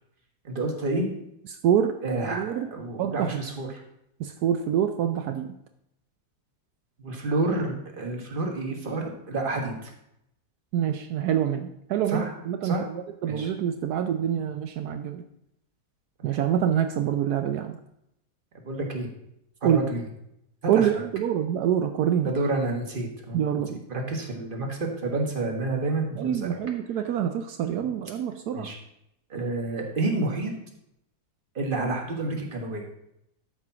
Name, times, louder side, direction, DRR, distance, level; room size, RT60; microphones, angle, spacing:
voice 1, 0.4-1.1 2.0-3.7 7.0-9.9 12.1-12.3 12.6-12.9 13.2-13.5 18.6-19.1 19.6-20.0 20.7-20.9 22.2-23.6 23.9-26.6 28.5-28.8 29.3-30.5 31.5-32.8, right 2 dB, 35° right, 2 dB, 1.7 m, -29 dB
voice 2, 1.6-2.0 2.3-2.7 3.0-3.3 4.2-5.5 10.7-15.2 16.2-17.8 19.6-19.8 20.7-22.3 23.3-23.8 26.2-28.7, right 9 dB, 75° right, 8 dB, 1.1 m, -26 dB
13.0 x 4.5 x 5.8 m, 0.80 s
omnidirectional pair, 1.7 m